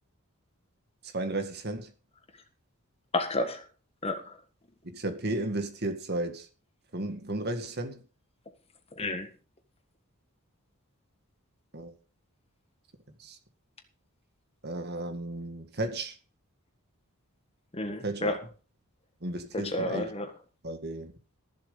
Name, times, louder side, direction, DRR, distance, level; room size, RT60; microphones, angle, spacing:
voice 1, 1.0-1.9 4.9-6.5 6.9-8.0 11.7-11.9 13.2-13.4 14.6-16.2 18.0-18.3 19.2-20.1 20.6-21.1, right 2 dB, 45° right, 1.9 m, -34 dB
voice 2, 3.1-3.6 4.0-4.4 9.0-9.3 17.7-18.4 19.5-20.3, left 2 dB, 25° left, 1.7 m, -31 dB
14.0 x 7.7 x 5.6 m
head